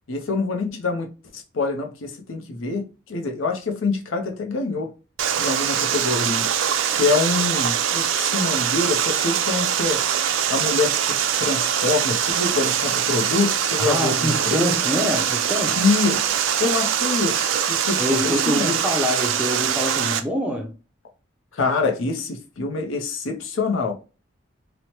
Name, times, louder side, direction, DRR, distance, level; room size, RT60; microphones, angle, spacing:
voice 1, 0.1-1.1 1.3-4.9 5.4-6.5 6.9-10.0 10.5-14.7 15.8-16.2 16.6-18.7 21.5-23.9, left 3 dB, 80° left, 0.6 m, -25 dB
Water, 5.2-20.2, right 9 dB, 75° right, 0.4 m, -23 dB
voice 2, 13.8-15.8 18.0-20.7, equal, 5° right, 0.5 m, -25 dB
3.0 x 2.1 x 2.8 m
head